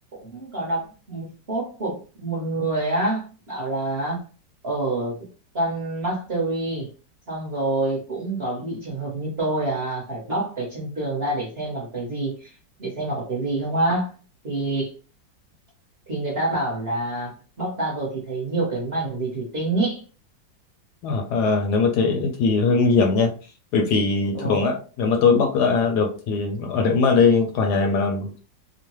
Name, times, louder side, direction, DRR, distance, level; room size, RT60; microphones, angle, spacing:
voice 1, 0.1-4.2 4.6-5.3 5.5-6.9 7.3-12.5 12.8-14.1 14.4-14.9 16.1-17.3 17.6-20.0 24.3-24.6, right 2 dB, 45° right, -3 dB, 0.9 m, -27 dB
voice 2, 21.0-23.3 23.7-28.4, left 4 dB, 75° left, 3 dB, 1.0 m, -20 dB
3.0 x 2.1 x 2.9 m, 0.36 s
omnidirectional pair, 2.0 m